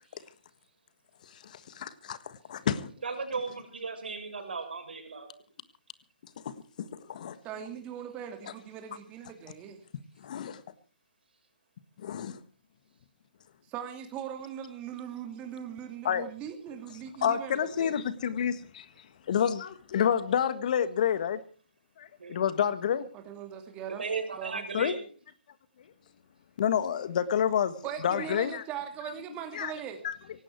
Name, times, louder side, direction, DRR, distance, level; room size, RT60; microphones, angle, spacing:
voice 1, 1.7-2.2 2.5-2.9 6.4-6.5 7.1-7.3 10.2-10.6 12.0-12.4 16.0-16.3 17.2-18.8 19.3-21.4 22.0-23.0 24.7-24.9 26.6-27.7 28.0-28.6 29.5-29.7 30.0-30.1, left 8 dB, 50° left, 1.6 m, -28 dB
voice 2, 3.0-5.3 22.2-22.5 23.9-25.1, right 4 dB, 75° right, 6.1 m, -36 dB
voice 3, 7.4-9.8 13.7-17.9 23.1-24.0 24.4-24.6 27.8-30.0, right 9 dB, 20° right, 2.5 m, -40 dB
18.0 x 16.5 x 4.6 m
figure-of-eight pair, 140°, 5 cm